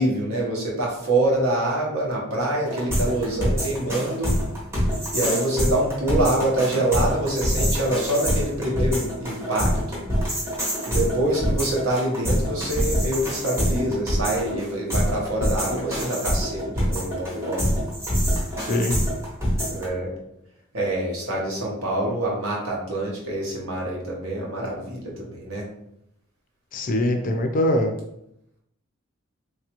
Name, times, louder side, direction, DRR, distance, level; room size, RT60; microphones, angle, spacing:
voice 1, 0.0-4.3 5.1-10.0 10.9-17.7 19.7-20.1 20.7-25.7, right 1 dB, 75° right, -2 dB, 0.9 m, -25 dB
sound 1, 2.7-19.9, equal, 10° right, 0.7 m, -25 dB
voice 2, 18.6-19.0 26.7-27.9, left 1 dB, 40° left, 4 dB, 0.4 m, -22 dB
3.1 x 2.4 x 2.9 m, 0.79 s
head